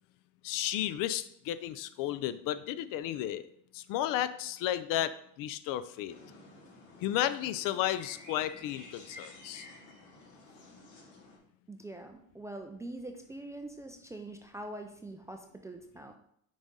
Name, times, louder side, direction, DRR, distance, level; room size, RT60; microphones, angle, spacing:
voice 1, 0.4-3.5 3.7-6.2 7.0-9.7, left 12 dB, 60° left, 14 dB, 0.5 m, -33 dB
sound 1, 6.1-11.4, left 2 dB, 45° left, 2.5 m, -51 dB
voice 2, 11.7-16.2, right 1 dB, 10° right, 4 dB, 0.3 m, -44 dB
6.1 x 4.1 x 3.7 m, 0.68 s
cardioid pair, 125°, 37 cm